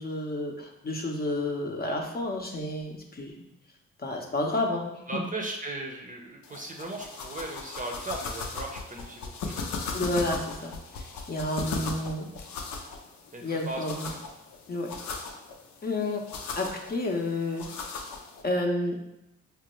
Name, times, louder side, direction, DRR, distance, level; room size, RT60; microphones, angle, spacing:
voice 1, 0.0-3.3 4.0-5.2 9.9-12.3 13.4-14.1 14.7-14.9 15.8-16.2 16.6-17.7 18.4-19.0, left 2 dB, 30° left, 1 dB, 0.7 m, -30 dB
voice 2, 5.1-9.7 13.3-14.0, right 2 dB, 25° right, 1 dB, 0.7 m, -37 dB
sound 1, 6.4-18.4, left 4 dB, 75° left, 0.6 m, -38 dB
5.0 x 2.1 x 3.1 m, 0.87 s
supercardioid pair, 70°, 29 cm